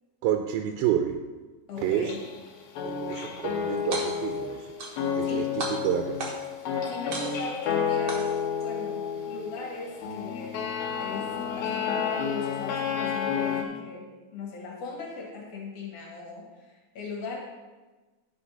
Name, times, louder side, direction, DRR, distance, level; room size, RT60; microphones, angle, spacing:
voice 1, 0.2-1.2 1.8-2.2 2.8-4.7 5.1-6.2, right 10 dB, 85° right, 5 dB, 2.4 m, -29 dB
voice 2, 1.7-2.2 5.2-5.5 6.9-8.3 8.6-10.6 11.0-11.3 11.6-17.4, left 4 dB, 60° left, -2 dB, 2.5 m, -39 dB
sound 1, 1.8-2.5 2.7-13.6, left 7 dB, 80° left, 2.7 m, -31 dB
sound 2, 3.8-4.4 4.8-5.3 5.6-6.6 7.1-7.6 8.1-8.6, right 3 dB, 65° right, 1.3 m, -35 dB
11.5 x 4.4 x 5.4 m, 1.2 s
omnidirectional pair, 4.3 m